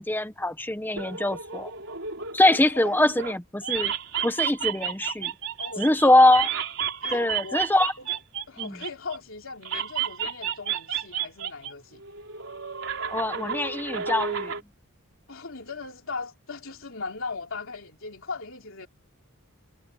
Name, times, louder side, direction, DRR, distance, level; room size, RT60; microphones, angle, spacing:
voice 1, 0.0-1.7 2.3-3.9 4.2-5.3 5.8-6.5 7.1-7.9 8.6-8.8 13.1-14.5, left 1 dB, 10° left, 1.0 m, -22 dB
sound 1, 1.0-3.4 3.6-9.2 9.6-11.7 12.0-14.6, right 8 dB, 60° right, 4.6 m, -31 dB
voice 2, 5.6-6.2 7.0-7.6 8.0-8.2 8.5-12.0 15.3-18.9, left 4 dB, 65° left, 3.6 m, -38 dB
head